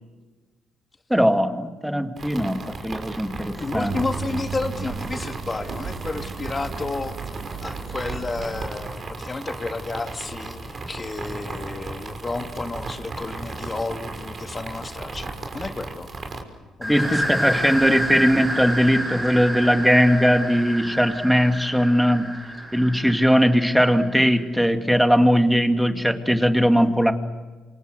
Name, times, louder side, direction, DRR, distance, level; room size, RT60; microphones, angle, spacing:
voice 1, 1.1-4.0 16.9-22.4 22.7-27.1, equal, ahead, 6 dB, 2.3 m, -19 dB
sound 1, 2.2-16.4, right 3 dB, 40° right, 5.7 m, -36 dB
voice 2, 3.6-7.2 7.6-16.1 16.8-17.6, left 3 dB, 25° left, 6 dB, 2.1 m, -31 dB
sound 2, 3.7-8.7, right 5 dB, 65° right, 6.4 m, -35 dB
sound 3, 16.8-24.3, equal, 25° right, 4.9 m, -29 dB
28.5 x 27.5 x 6.7 m, 1.3 s
cardioid pair, 90°, 0 cm